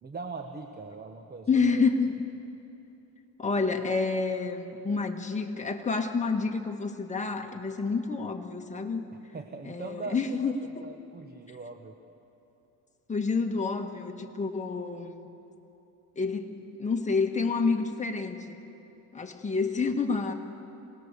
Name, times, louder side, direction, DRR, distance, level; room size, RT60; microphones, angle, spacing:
voice 1, 0.0-1.9 9.3-10.4 10.8-12.0, right 4 dB, 30° right, 5 dB, 1.2 m, -41 dB
voice 2, 1.5-2.1 3.4-9.0 9.6-10.5 13.1-15.3 16.1-16.5 16.8-18.6 19.1-20.3, left 4 dB, 20° left, 3 dB, 1.7 m, -28 dB
26.5 x 19.5 x 6.8 m, 2.9 s
cardioid pair, 110°, 34 cm